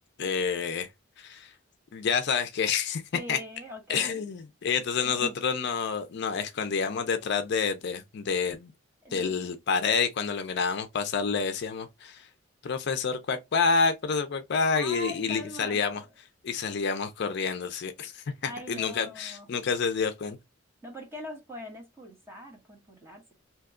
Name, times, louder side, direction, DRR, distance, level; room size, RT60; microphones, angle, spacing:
voice 1, 0.2-0.9 1.2-1.5 1.9-3.0 3.3-3.4 3.9-8.7 9.1-12.3 12.6-16.0 16.4-20.4, left 5 dB, 55° left, 0.4 m, -28 dB
voice 2, 3.1-4.2 5.0-5.4 9.0-9.3 14.7-16.1 18.4-19.5 20.8-23.3, equal, 10° right, 1.0 m, -42 dB
2.8 x 2.3 x 3.5 m
head